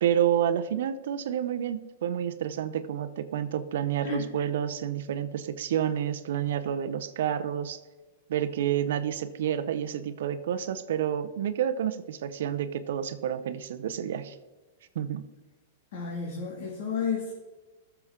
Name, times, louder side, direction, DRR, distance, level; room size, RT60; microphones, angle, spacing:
voice 1, 0.0-7.8 8.3-14.4 14.9-15.2, right 10 dB, 70° right, 11 dB, 0.7 m, -29 dB
voice 2, 15.9-17.3, left 6 dB, 60° left, -2 dB, 2.2 m, -32 dB
14.0 x 6.9 x 3.7 m, 1.2 s
supercardioid pair, 150°, 0 cm